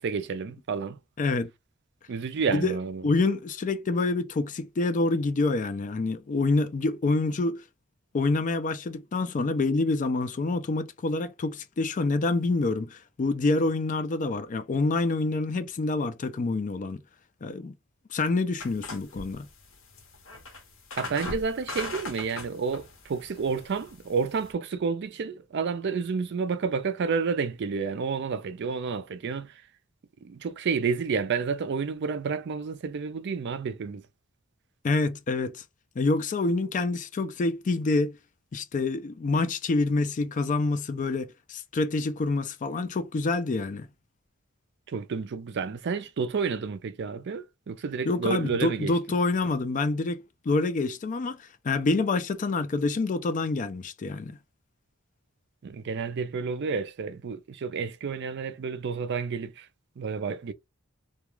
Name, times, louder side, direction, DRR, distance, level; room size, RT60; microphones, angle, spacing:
voice 1, 0.0-1.0 2.1-3.1 21.0-29.6 30.2-34.0 44.9-48.9 55.6-59.7 60.0-60.5, right 5 dB, 55° right, 0.4 m, -30 dB
voice 2, 1.2-1.5 2.5-2.7 3.0-7.6 8.1-17.0 17.4-17.7 18.1-19.5 34.8-35.5 36.0-38.2 38.5-43.9 48.1-54.4, left 3 dB, 40° left, 0.4 m, -27 dB
sound 1, 18.6-24.5, left 2 dB, 70° left, 0.9 m, -40 dB
2.3 x 2.2 x 3.0 m
head